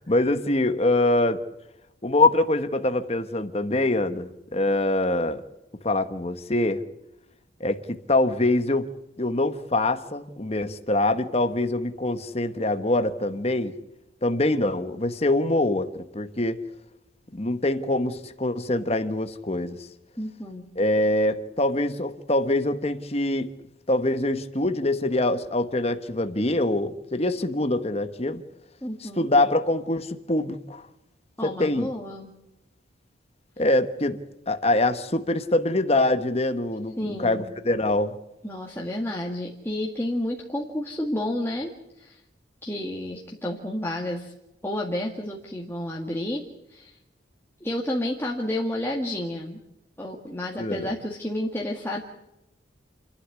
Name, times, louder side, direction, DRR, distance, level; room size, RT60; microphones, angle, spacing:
voice 1, 0.0-1.4 2.0-5.4 5.8-6.8 7.6-8.9 9.2-13.7 14.2-16.6 17.3-19.9 20.8-23.5 23.9-28.4 29.0-30.8 31.4-31.9 33.6-34.2 34.5-38.2 50.6-50.9, left 2 dB, 35° left, 1.2 m, -24 dB
voice 2, 20.2-20.7 28.8-29.3 31.4-32.3 37.0-37.5 38.4-42.2 42.6-44.3 44.6-46.4 46.7-47.0 47.6-49.6 50.0-52.0, left 1 dB, 10° left, 1.9 m, -30 dB
29.0 x 11.5 x 9.7 m
head